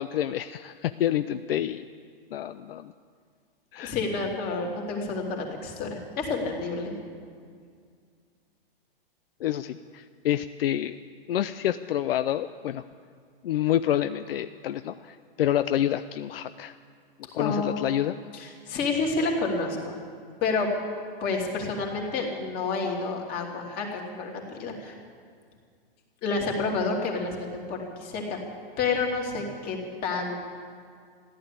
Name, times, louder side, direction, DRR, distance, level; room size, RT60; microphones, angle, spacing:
voice 1, 0.0-1.8 2.3-2.9 3.7-4.0 9.4-11.0 11.3-12.8 13.4-16.7 17.3-18.1, left 11 dB, 75° left, 11 dB, 0.6 m, -28 dB
voice 2, 3.8-7.0 17.4-17.9 18.3-19.9 20.4-20.7 21.2-24.9 26.2-28.4 28.8-30.4, left 3 dB, 30° left, 0 dB, 2.9 m, -29 dB
14.5 x 11.5 x 8.3 m, 2.1 s
hypercardioid pair, 135°, 29 cm